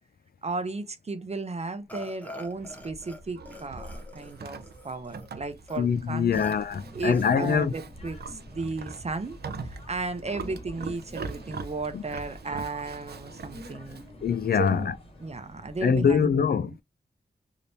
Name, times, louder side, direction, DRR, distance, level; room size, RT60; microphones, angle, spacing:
voice 1, 0.4-6.4 6.9-14.0 14.6-14.9 15.2-16.3 16.6-16.8, right 3 dB, 40° right, 0.7 m, -35 dB
Burping eructation, 1.9-3.2 3.5-5.3 5.7-5.8 6.3-6.5 7.1-7.6, left 2 dB, 10° left, 1.0 m, -45 dB
Livestock farm animals working animals, 2.4-14.1, right 4 dB, 75° right, 0.6 m, -42 dB
voice 2, 5.8-7.7 11.9-12.0 14.2-14.9 15.8-16.7, left 6 dB, 65° left, 0.4 m, -24 dB
sound 1, 6.7-16.2, equal, 35° left, 1.7 m, -48 dB
3.4 x 2.8 x 2.6 m
wide cardioid pair, 125°, 17 cm